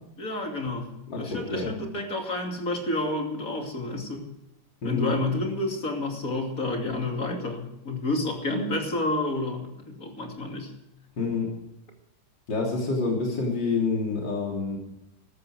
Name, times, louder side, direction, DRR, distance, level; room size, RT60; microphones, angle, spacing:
voice 1, 0.2-0.9 1.2-4.3 4.8-10.7, left 2 dB, 45° left, 2 dB, 3.1 m, -29 dB
voice 2, 1.1-1.7 4.8-5.2 11.2-11.5 12.5-14.8, left 4 dB, 70° left, -1 dB, 3.7 m, -27 dB
15.0 x 13.0 x 5.0 m, 0.90 s
omnidirectional pair, 2.1 m